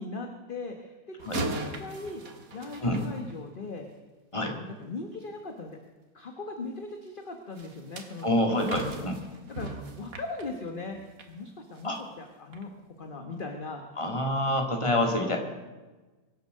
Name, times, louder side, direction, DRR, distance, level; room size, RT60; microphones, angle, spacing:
voice 1, 0.0-2.2 2.5-3.9 4.5-5.8 6.1-8.6 8.8-9.1 9.5-9.7 10.0-11.0 11.3-12.7 13.0-13.8, left 3 dB, 40° left, 4 dB, 1.4 m, -39 dB
sound 1, 1.2-3.8 7.6-11.3 11.8-12.0 12.5-12.6, right 3 dB, 75° right, 2.0 m, -39 dB
voice 2, 8.2-9.2 11.8-12.0 14.0-15.4, left 1 dB, 20° left, 3 dB, 2.1 m, -27 dB
23.5 x 8.3 x 6.6 m, 1.2 s
omnidirectional pair, 1.5 m